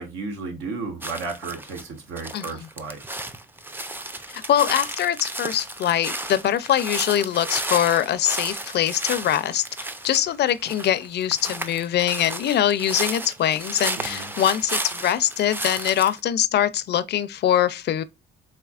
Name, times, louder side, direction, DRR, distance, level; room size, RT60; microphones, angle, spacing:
voice 1, 0.0-3.0 14.0-14.3, right 4 dB, 80° right, 1.1 m, -33 dB
sound 1, 1.0-1.8 2.2-16.2, right 1 dB, 10° right, 0.4 m, -33 dB
voice 2, 2.3-2.7 4.3-9.6 10.0-18.0, left 11 dB, 60° left, 0.4 m, -23 dB
4.2 x 3.1 x 2.4 m
cardioid pair, 90°, 20 cm